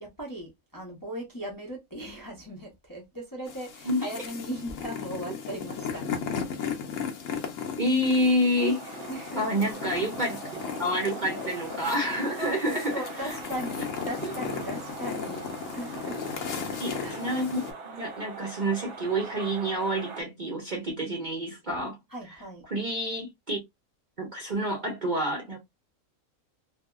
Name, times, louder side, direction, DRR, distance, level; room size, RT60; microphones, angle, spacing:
voice 1, 0.0-6.1 9.1-9.8 12.4-15.5 15.7-16.2 16.8-17.3 22.1-22.6, right 1 dB, 20° left, 0.6 m, -38 dB
sound 1, 3.5-17.7, left 6 dB, 65° left, 1.0 m, -36 dB
voice 2, 7.8-9.0 9.4-13.3 14.2-14.3 16.8-22.0 22.7-23.6 24.2-25.6, equal, 45° right, 0.7 m, -28 dB
sound 2, 8.6-20.2, right 4 dB, 60° right, 1.0 m, -42 dB
2.7 x 2.7 x 2.3 m
omnidirectional pair, 1.5 m